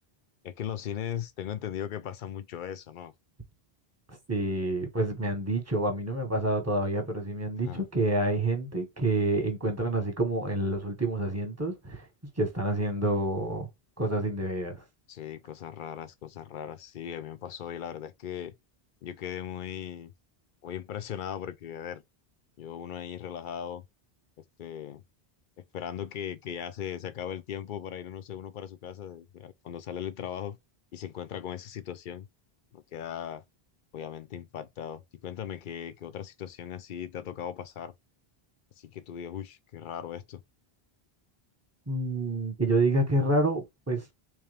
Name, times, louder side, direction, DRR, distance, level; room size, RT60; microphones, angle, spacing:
voice 1, 0.4-3.1 7.7-7.8 15.1-18.5 19.0-20.1 20.6-22.0 22.6-23.8 24.6-25.0 25.6-30.6 30.9-32.3 32.7-33.4 33.9-37.9 38.8-40.4, left 9 dB, 60° left, 0.7 m, -38 dB
voice 2, 4.1-12.0 12.4-13.7 14.0-14.8 41.9-44.0, right 2 dB, 15° right, 1.0 m, -28 dB
3.4 x 3.0 x 3.3 m
omnidirectional pair, 1.0 m